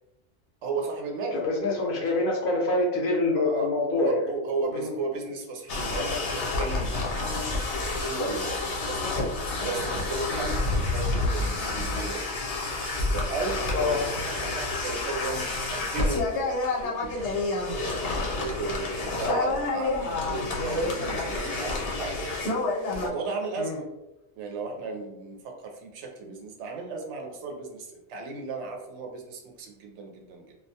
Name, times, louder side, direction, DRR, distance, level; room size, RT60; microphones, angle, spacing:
voice 1, 0.6-1.5 3.4-3.7 4.0-7.6 7.8-9.1 9.6-12.3 13.1-14.1 14.4-17.9 18.3-22.1 22.9-23.8 24.4-30.5, right 4 dB, 80° right, 2 dB, 0.9 m, -35 dB
voice 2, 1.3-4.2 4.7-4.9 5.7-6.2 7.3-7.5 10.3-10.5 13.7-14.0 23.6-23.8, left 2 dB, 60° left, -2 dB, 0.7 m, -27 dB
sound 1, 5.7-23.1, left 2 dB, 80° left, 1.0 m, -29 dB
2.3 x 2.2 x 2.7 m, 0.97 s
omnidirectional pair, 1.2 m